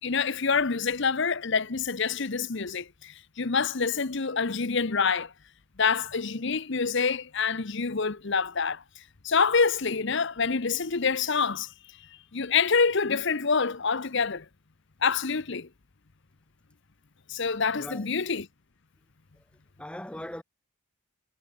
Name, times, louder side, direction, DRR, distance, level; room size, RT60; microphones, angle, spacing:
voice 1, 0.0-5.3 5.8-8.8 9.2-11.7 12.3-14.4 15.0-15.7 17.3-18.5, left 5 dB, 55° left, 0.9 m, -26 dB
voice 2, 17.7-18.1 19.3-19.4 19.8-20.4, left 1 dB, 5° left, 0.8 m, -39 dB
head